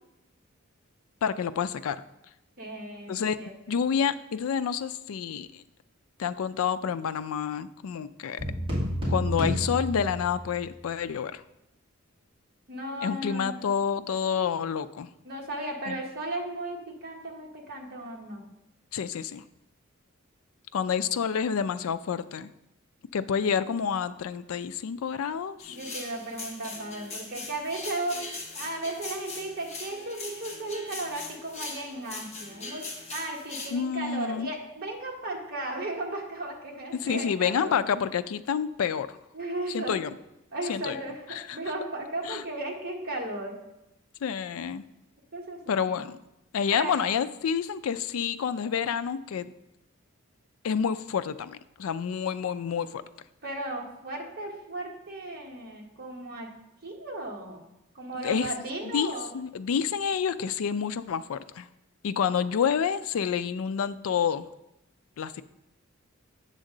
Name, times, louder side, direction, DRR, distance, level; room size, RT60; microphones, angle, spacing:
voice 1, 1.2-2.0 3.1-3.4 3.7-5.6 6.2-8.4 9.1-11.4 13.0-15.1 15.9-16.0 18.9-19.4 20.7-22.5 23.1-25.8 33.7-34.5 37.0-39.2 39.7-40.1 40.7-41.0 41.3-41.6 42.2-42.4 44.2-44.8 45.7-46.2 46.5-49.5 50.6-53.0 58.2-58.5 58.8-61.7 62.0-64.5 65.2-65.4, left 7 dB, 80° left, 12 dB, 0.4 m, -28 dB
voice 2, 2.6-3.8 12.7-13.6 15.2-18.4 25.7-28.2 28.5-32.8 33.1-37.7 39.3-40.0 40.5-43.6 45.3-45.8 46.7-47.0 53.4-56.5 56.8-57.7 57.9-59.3, right 2 dB, 45° right, -1 dB, 1.4 m, -35 dB
sound 1, 8.4-10.6, equal, 25° right, 2.2 m, -30 dB
sound 2, 25.6-33.7, left 3 dB, 30° left, 1.0 m, -40 dB
8.0 x 6.4 x 3.8 m, 0.90 s
head